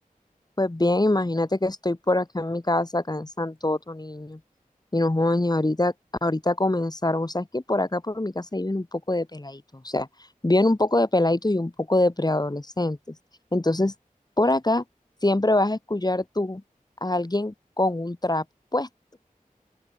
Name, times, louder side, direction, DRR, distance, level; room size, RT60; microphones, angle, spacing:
voice 1, 0.6-4.4 4.9-5.9 6.2-10.1 10.4-13.1 13.5-13.9 14.4-14.8 15.2-16.6 17.0-18.4 18.7-18.9, left 2 dB, 25° left, 1.6 m, -24 dB
open air
wide cardioid pair, 60°, 15 cm